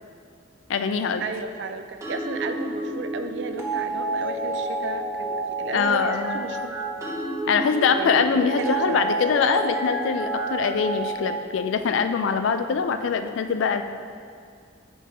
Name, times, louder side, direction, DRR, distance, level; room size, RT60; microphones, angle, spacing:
voice 1, 0.7-1.3 5.7-6.4 7.5-13.8, left 5 dB, 80° left, 9 dB, 0.3 m, -23 dB
voice 2, 1.2-6.7 7.0-7.2 7.9-9.0, right 4 dB, 65° right, 8 dB, 0.4 m, -34 dB
sound 1, 2.0-11.4, right 2 dB, 15° right, 0.8 m, -29 dB
9.2 x 3.7 x 2.9 m, 2.2 s
head